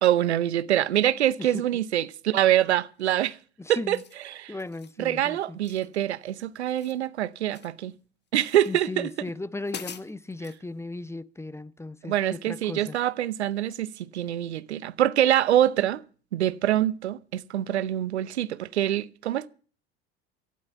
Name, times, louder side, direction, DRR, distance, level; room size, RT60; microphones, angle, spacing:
voice 1, 0.0-3.4 3.7-4.0 4.4-4.5 5.0-7.9 8.3-9.1 12.1-16.0 16.3-19.5, right 12 dB, 90° right, 0.7 m, -25 dB
voice 2, 1.4-1.8 3.6-4.0 4.5-5.6 8.7-13.0, left 2 dB, 10° left, 0.7 m, -37 dB
sound 1, 3.0-3.4 3.8-4.2 4.6-5.0 5.6-6.3 6.6-7.8 8.4-8.8 9.3-9.4 9.7-10.6, left 7 dB, 30° left, 1.5 m, -45 dB
12.5 x 10.5 x 7.9 m
hypercardioid pair, 75°, 32 cm